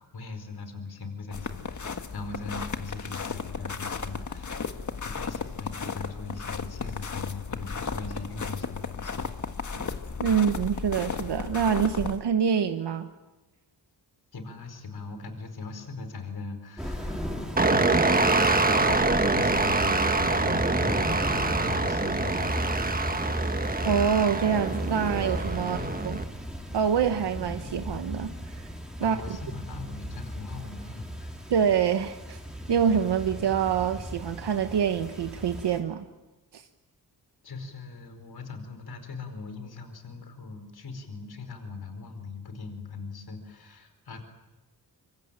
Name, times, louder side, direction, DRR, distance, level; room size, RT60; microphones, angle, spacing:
voice 1, 0.0-4.7 5.0-9.4 9.7-9.9 14.3-17.3 17.6-22.8 25.6-26.2 29.0-31.3 37.4-44.2, left 4 dB, 65° left, 8 dB, 4.8 m, -40 dB
sound 1, 1.3-12.2, left 5 dB, 45° left, 1.7 m, -35 dB
voice 2, 10.2-13.1 23.8-25.8 26.0-26.2 26.7-28.7 29.0-29.2 31.5-32.4 32.7-36.0 36.5-36.6, right 7 dB, 85° right, 7 dB, 1.2 m, -26 dB
sound 2, 16.8-35.8, equal, ahead, 5.1 m, -35 dB
sound 3, 17.6-26.2, right 3 dB, 20° right, 1.5 m, -25 dB
25.0 x 24.5 x 9.1 m, 1.1 s
cardioid pair, 90°, 40 cm